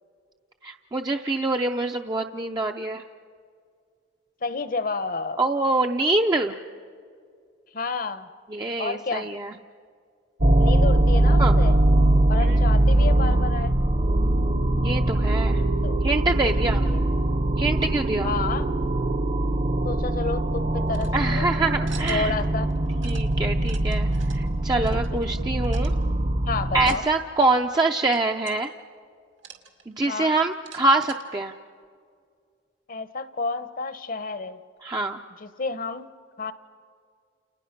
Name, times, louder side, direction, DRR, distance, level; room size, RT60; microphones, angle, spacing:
voice 1, 0.6-3.0 5.4-6.6 8.5-9.5 11.4-11.6 12.4-12.6 14.8-15.6 16.0-16.9 17.6-18.3 21.1-22.3 23.0-25.9 26.7-28.7 29.9-31.5 34.8-35.2, right 2 dB, 20° right, 3 dB, 0.5 m, -25 dB
voice 2, 4.4-5.4 7.7-8.3 8.8-9.3 10.6-11.8 12.3-13.7 15.8-16.0 16.7-17.0 18.2-18.7 19.8-21.8 22.1-22.7 24.9-25.0 26.5-27.1 30.1-30.4 32.9-34.6 35.4-36.1 36.4-36.5, left 4 dB, 50° left, 12 dB, 0.9 m, -30 dB
sound 1, 10.4-27.0, right 1 dB, 40° right, 0.9 m, -22 dB
sound 2, 20.9-21.2 21.9-22.4 22.7-23.3 23.6-24.4 24.8-25.4 25.6-26.0 26.8-27.1 27.3-27.4 28.1-28.6 29.4-30.0 30.5-31.2, right 8 dB, 85° right, 2.3 m, -45 dB
29.5 x 29.5 x 5.9 m, 2.3 s
head